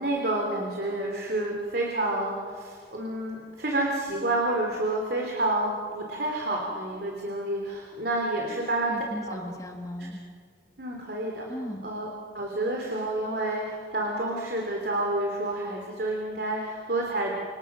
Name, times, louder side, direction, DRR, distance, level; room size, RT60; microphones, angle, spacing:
voice 1, 0.0-9.0 9.3-9.4 10.8-11.4 11.8-12.1 12.3-17.3, right 2 dB, 60° right, 0 dB, 3.2 m, -29 dB
voice 2, 8.5-10.2 11.5-11.9, equal, 20° left, 3 dB, 1.9 m, -37 dB
29.0 x 27.0 x 6.1 m, 2.1 s
head